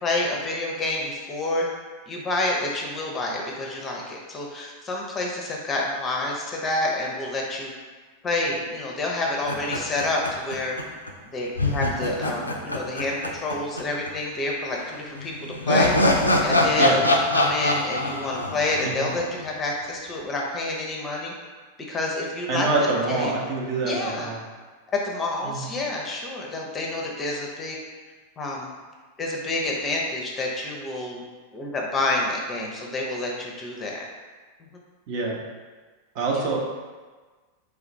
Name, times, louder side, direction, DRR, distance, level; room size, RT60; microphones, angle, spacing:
voice 1, 0.0-1.7 2.1-7.7 8.2-10.8 11.3-16.0 16.4-21.3 21.9-23.3 23.8-24.3 25.0-27.8 28.4-28.7 29.2-31.2 31.5-34.1 34.6-34.7, left 2 dB, 25° left, -1 dB, 0.5 m, -28 dB
sound 1, 9.4-10.8 11.1-11.2 11.6-13.8 14.1-14.2 15.2-19.5, left 1 dB, 80° left, 0.3 m, -23 dB
voice 2, 22.5-24.4 25.4-25.7 35.1-35.4 36.1-36.6, right 3 dB, 45° right, -2 dB, 0.6 m, -25 dB
3.3 x 2.4 x 3.0 m, 1.3 s
figure-of-eight pair, 90°, 0 cm